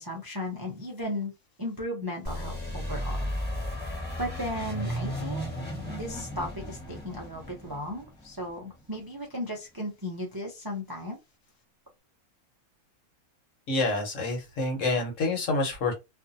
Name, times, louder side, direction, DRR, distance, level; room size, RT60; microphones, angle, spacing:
voice 1, 0.0-1.3 1.6-3.2 3.7-5.4 5.9-11.2, left 1 dB, 35° right, 0.4 m, -36 dB
sound 1, 2.2-8.8, equal, 10° left, 1.1 m, -35 dB
voice 2, 13.7-15.9, left 2 dB, 60° left, 1.3 m, -27 dB
2.6 x 2.5 x 2.6 m
omnidirectional pair, 1.5 m